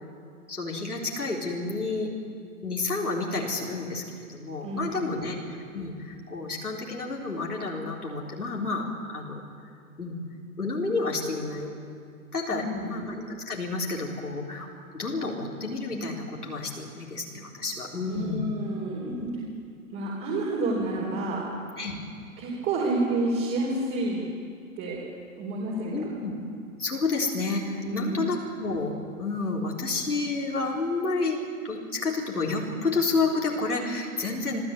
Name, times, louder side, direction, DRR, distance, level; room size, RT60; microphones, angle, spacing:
voice 1, 0.5-2.1 2.6-4.0 4.3-5.4 5.7-8.9 9.1-9.4 10.0-10.2 10.6-11.7 12.3-14.7 14.9-18.4 19.0-19.3 20.8-20.9 21.8-21.9 25.9-26.3 26.8-34.6, left 3 dB, 85° left, -3 dB, 4.1 m, -30 dB
voice 2, 4.6-5.2 12.5-13.0 18.0-19.2 19.9-21.4 22.4-24.2 24.8-25.0 25.4-25.9 27.8-28.2, right 2 dB, 30° right, -4 dB, 4.4 m, -29 dB
25.5 x 15.5 x 8.4 m, 2.3 s
figure-of-eight pair, 110°, 44 cm